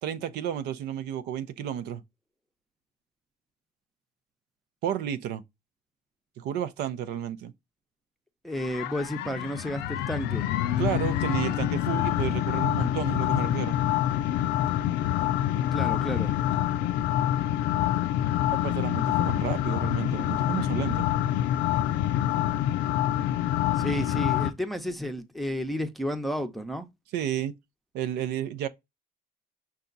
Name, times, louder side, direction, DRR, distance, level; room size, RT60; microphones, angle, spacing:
voice 1, 0.0-2.0 4.8-5.4 6.4-7.5 10.8-13.8 18.5-21.1 27.1-27.5 27.9-28.7, right 10 dB, 80° right, 0.6 m, -31 dB
voice 2, 8.4-10.5 15.7-16.3 23.7-26.9, equal, ahead, 0.7 m, -32 dB
sound 1, 8.6-24.5, left 12 dB, 90° left, 0.4 m, -26 dB
5.6 x 2.4 x 3.9 m
cardioid pair, 110°, 17 cm